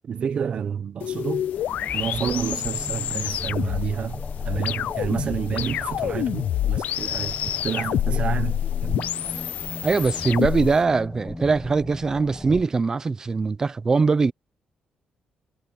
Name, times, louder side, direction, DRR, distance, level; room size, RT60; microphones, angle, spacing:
voice 1, 0.0-1.5 1.9-9.1, right 7 dB, 40° right, 1.0 m, -29 dB
sound 1, 1.0-10.8, left 11 dB, 70° left, 0.6 m, -28 dB
sound 2, 1.5-12.6, left 2 dB, 10° left, 1.1 m, -38 dB
voice 2, 9.8-14.3, right 4 dB, 20° right, 0.7 m, -22 dB
cardioid pair, 160°, 3 cm